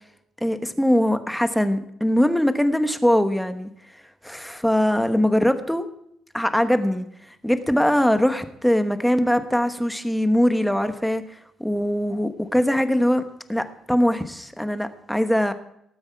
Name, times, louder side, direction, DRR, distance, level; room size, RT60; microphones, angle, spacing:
voice 1, 0.4-3.7 4.2-5.9 6.3-7.0 7.4-11.2 11.6-13.2 13.5-15.5, equal, 5° left, 9 dB, 1.1 m, -21 dB
19.0 x 7.8 x 4.7 m, 0.74 s
cardioid pair, 90°, 0 cm